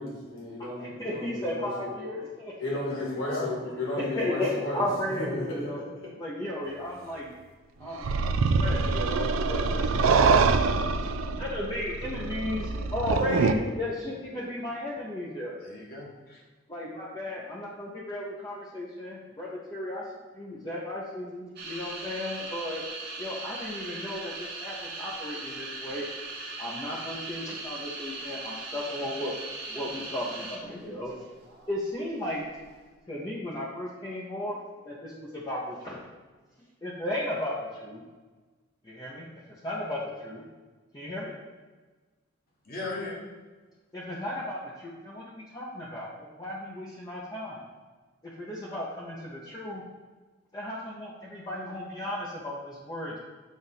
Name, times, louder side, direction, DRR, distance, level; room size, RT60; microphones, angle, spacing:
voice 1, 0.0-2.1 2.6-6.1, left 1 dB, 85° left, -5 dB, 1.9 m, -34 dB
voice 2, 0.6-2.5 3.9-5.8 6.2-7.3 7.8-10.1 11.0-15.6 16.7-20.0 20.3-22.8 23.2-26.1 26.6-29.4 29.7-31.2 31.7-32.4 33.1-34.6 34.8-36.0 36.8-38.0 38.8-39.3 39.6-40.4 40.9-41.3 43.9-47.6 48.2-49.8 50.5-53.2, left 1 dB, 20° left, -6 dB, 0.7 m, -35 dB
voice 3, 2.9-3.5 15.6-16.4 42.6-43.2, left 2 dB, 45° left, -3 dB, 1.5 m, -37 dB
sound 1, 8.0-13.5, right 4 dB, 85° right, 0.4 m, -25 dB
sound 2, 21.6-30.8 31.1-31.7 32.4-32.7, right 3 dB, 55° right, 1.1 m, -39 dB
7.3 x 2.5 x 5.6 m, 1.3 s
head